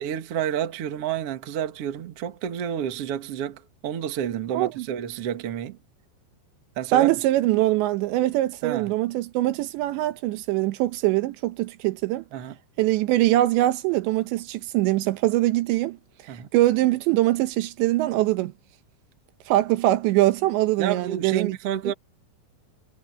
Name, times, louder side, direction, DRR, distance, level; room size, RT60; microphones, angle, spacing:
voice 1, 0.0-5.8 6.8-7.1 8.6-8.9 12.3-12.6 16.3-16.5 20.8-21.9, right 9 dB, 55° right, 1.7 m, -30 dB
voice 2, 4.5-4.9 6.9-12.2 12.8-16.0 16.5-18.5 19.5-21.6 21.8-21.9, right 16 dB, 80° right, 3.3 m, -22 dB
omnidirectional pair, 5.1 m